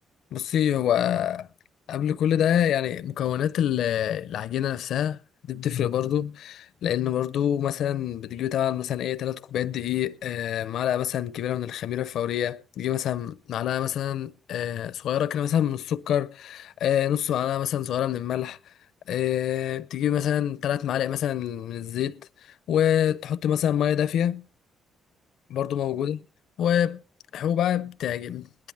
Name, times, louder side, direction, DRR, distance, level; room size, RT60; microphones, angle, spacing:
voice 1, 0.3-1.5 1.9-5.2 5.5-18.6 19.1-22.3 22.7-24.4 25.5-26.2 26.6-27.0 27.3-28.5, left 10 dB, 75° left, 0.5 m, -26 dB
20.5 x 10.5 x 3.4 m
cardioid pair, 90°, 0 cm